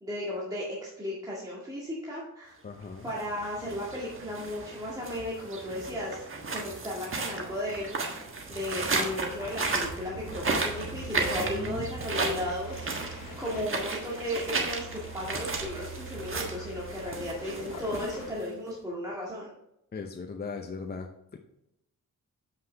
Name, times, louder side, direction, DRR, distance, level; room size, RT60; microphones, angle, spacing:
voice 1, 0.0-2.6 3.0-6.2 6.5-19.5, left 1 dB, 10° right, -6 dB, 1.9 m, -35 dB
voice 2, 2.6-3.1 11.5-11.9 19.9-21.1 21.3-21.4, left 5 dB, 30° left, 4 dB, 0.6 m, -38 dB
sound 1, 3.0-18.7, right 3 dB, 40° right, 1.4 m, -34 dB
sound 2, 9.1-18.3, right 2 dB, 90° left, 1.7 m, -43 dB
7.5 x 5.7 x 3.4 m, 0.84 s
cardioid pair, 85°, 32 cm